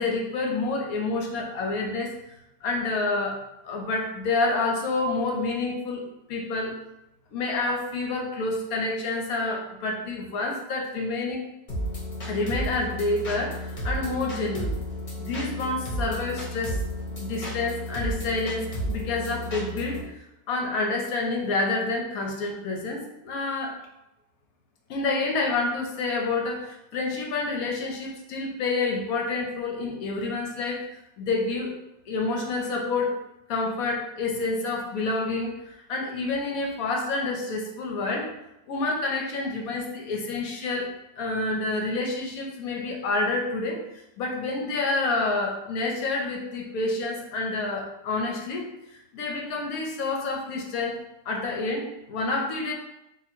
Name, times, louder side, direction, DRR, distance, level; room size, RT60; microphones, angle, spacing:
voice 1, 0.0-2.1 2.6-6.0 6.3-6.8 7.3-11.4 12.3-14.7 15.2-16.8 17.1-23.8 24.9-30.9 31.2-31.7 32.1-33.2 33.5-38.3 38.7-40.9 41.2-48.6 48.9-51.0 51.3-52.7, left 3 dB, 65° left, 1 dB, 0.9 m, -28 dB
sound 1, 11.7-20.0, equal, 40° left, 0.7 m, -32 dB
2.8 x 2.5 x 4.2 m, 0.89 s
omnidirectional pair, 1.9 m